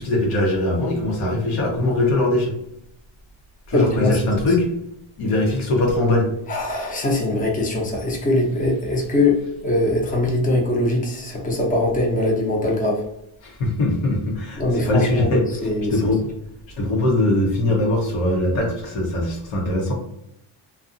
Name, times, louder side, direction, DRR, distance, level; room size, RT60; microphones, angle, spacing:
voice 1, 0.0-2.5 3.7-4.7 5.2-6.3 13.4-16.2 16.8-19.9, left 1 dB, 90° left, 0 dB, 1.0 m, -21 dB
voice 2, 3.7-4.2 6.5-13.0 14.6-15.3 15.6-16.1, left 2 dB, 15° left, -1 dB, 0.6 m, -21 dB
2.5 x 2.3 x 2.5 m, 0.78 s
cardioid pair, 110°, 48 cm